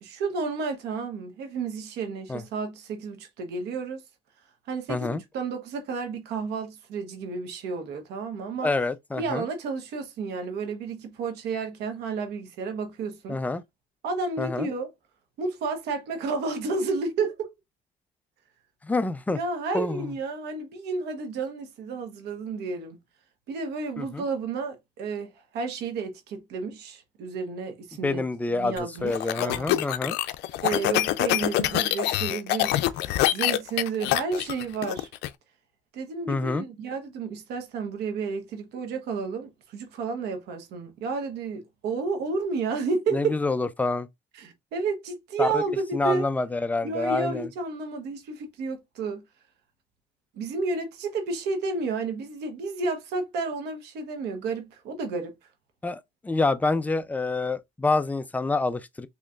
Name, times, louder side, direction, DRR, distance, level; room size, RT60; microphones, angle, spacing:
voice 1, 0.0-4.0 4.7-8.7 9.2-13.4 14.0-14.9 15.4-17.5 19.3-23.0 23.5-28.2 28.5-29.8 30.6-35.1 35.9-43.3 44.3-46.3 46.8-49.2 50.3-55.3, right 4 dB, 80° right, 1.2 m, -31 dB
voice 2, 4.9-5.2 8.6-9.5 13.3-13.6 14.4-14.7 18.8-19.4 19.7-20.1 24.0-24.2 28.0-30.2 36.3-36.6 43.1-44.1 45.4-45.6 45.9-47.5 55.8-59.1, left 3 dB, 10° left, 0.4 m, -27 dB
sound 1, 28.8-35.3, left 15 dB, 90° left, 0.4 m, -25 dB
4.1 x 3.0 x 2.4 m
cardioid pair, 110°, 17 cm